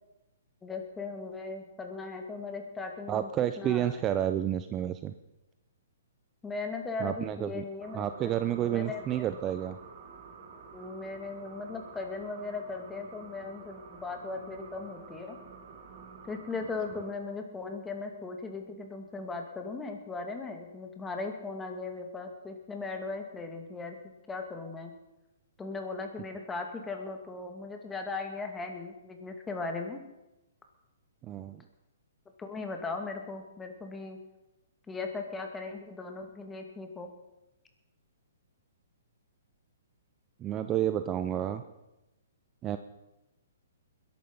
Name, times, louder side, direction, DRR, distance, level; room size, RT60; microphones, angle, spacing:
voice 1, 0.6-3.3 3.6-4.0 6.4-8.3 8.6-9.2 10.7-15.4 16.2-24.0 24.3-24.9 25.6-30.0 32.4-34.2 34.9-37.1, left 3 dB, 10° left, 4 dB, 2.5 m, -38 dB
voice 2, 3.1-5.1 7.0-7.6 7.9-9.8 31.2-31.6 40.4-41.6 42.6-42.8, right 11 dB, 25° right, 10 dB, 0.7 m, -30 dB
sound 1, 7.8-17.1, right 5 dB, 45° right, 2.3 m, -49 dB
21.0 x 11.5 x 5.6 m, 0.95 s
hypercardioid pair, 135°, 0 cm